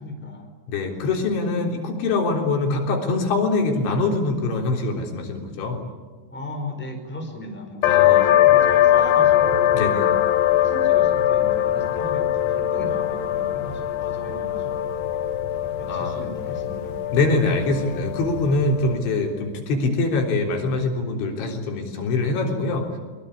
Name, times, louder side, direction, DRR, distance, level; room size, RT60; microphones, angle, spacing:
voice 1, 0.0-0.5 6.3-9.8 10.6-14.9 15.8-17.0, left 1 dB, ahead, 3 dB, 4.4 m, -36 dB
voice 2, 0.7-5.8 7.9-8.3 9.7-10.0 15.9-16.2 17.1-23.0, left 3 dB, 80° left, 2 dB, 6.0 m, -24 dB
sound 1, 7.8-19.1, left 11 dB, 65° left, 2.5 m, -21 dB
23.5 x 23.0 x 9.9 m, 1.3 s
omnidirectional pair, 5.3 m